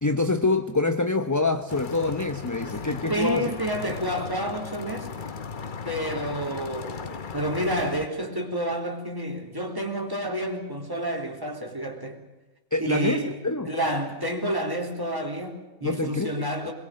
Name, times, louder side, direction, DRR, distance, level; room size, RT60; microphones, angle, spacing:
voice 1, 0.0-3.5 12.7-13.7 15.8-16.7, left 3 dB, 15° left, 0.8 m, -26 dB
sound 1, 1.7-8.1, left 5 dB, 40° left, 1.0 m, -36 dB
voice 2, 3.1-5.1 5.9-12.2 12.8-13.4 13.7-16.7, right 1 dB, 15° right, 3.6 m, -29 dB
24.5 x 21.5 x 7.7 m
omnidirectional pair, 1.6 m